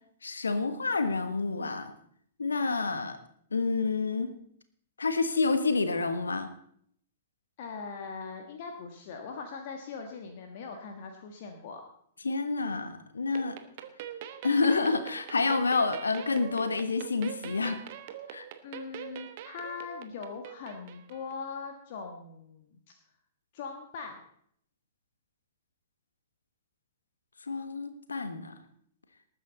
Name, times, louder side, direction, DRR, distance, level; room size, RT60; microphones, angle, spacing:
voice 1, 0.2-1.9 2.4-3.2 3.5-4.3 5.0-6.5 12.2-13.6 14.4-17.8 18.3-18.4 27.5-28.6, left 4 dB, 70° left, 10 dB, 1.4 m, -28 dB
voice 2, 7.6-11.8 18.3-22.9 23.5-24.2, left 5 dB, 45° left, 3 dB, 1.6 m, -41 dB
sound 1, 13.3-21.4, right 10 dB, 45° right, 1.2 m, -44 dB
19.0 x 9.2 x 4.0 m, 0.66 s
figure-of-eight pair, 105°, 0 cm